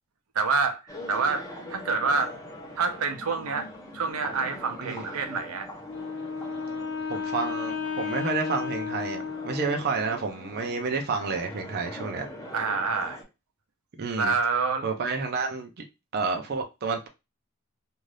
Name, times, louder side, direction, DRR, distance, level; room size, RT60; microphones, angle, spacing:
voice 1, 0.3-2.3 2.8-3.7 3.9-5.7 12.5-13.2 14.2-14.9, right 4 dB, 90° right, 0.6 m, -27 dB
sound 1, 0.9-13.2, left 1 dB, 15° left, 0.7 m, -42 dB
Wind instrument woodwind instrument, 5.8-10.1, left 6 dB, 60° left, 0.4 m, -33 dB
voice 2, 7.1-12.3 14.0-14.3 14.8-15.7 16.1-17.1, right 4 dB, 50° right, 0.5 m, -30 dB
2.6 x 2.3 x 3.2 m
head